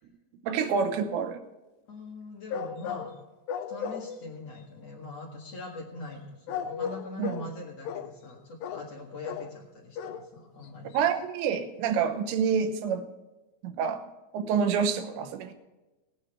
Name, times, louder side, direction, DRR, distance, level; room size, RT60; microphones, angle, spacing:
voice 1, 0.4-1.4 7.2-7.4 10.9-13.1 13.6-14.0 14.3-15.5, right 6 dB, 85° right, 9 dB, 3.2 m, -27 dB
voice 2, 1.9-3.2 3.7-11.1, left 2 dB, 50° left, -2 dB, 2.3 m, -43 dB
sound 1, 2.5-3.2 3.5-4.2 6.5-7.5 7.8-8.1 8.6-8.9 9.2-9.5 10.0-10.3 10.6-10.7 10.9-11.0, left 7 dB, 80° left, 2.7 m, -35 dB
18.0 x 9.1 x 4.4 m, 1.1 s
omnidirectional pair, 5.0 m